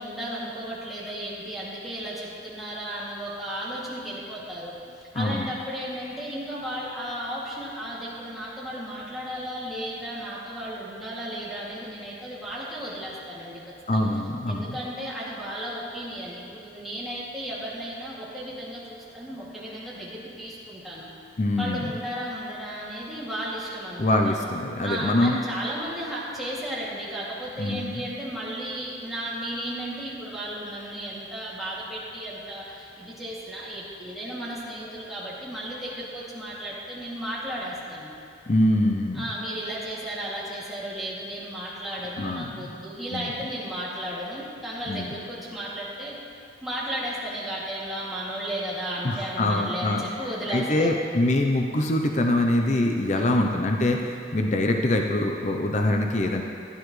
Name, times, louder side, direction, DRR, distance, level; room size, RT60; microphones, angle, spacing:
voice 1, 0.0-14.1 14.5-21.1 21.6-24.3 24.8-38.1 39.1-46.2 46.6-51.0 53.1-53.5, equal, ahead, -8 dB, 2.4 m, -34 dB
voice 2, 5.2-5.5 13.9-14.8 21.4-21.8 24.0-25.3 27.6-28.0 38.5-39.3 42.2-42.7 43.1-43.3 44.9-45.1 49.0-50.0 50.5-56.4, left 1 dB, 40° left, 2 dB, 0.6 m, -24 dB
16.5 x 11.5 x 3.2 m, 2.4 s
head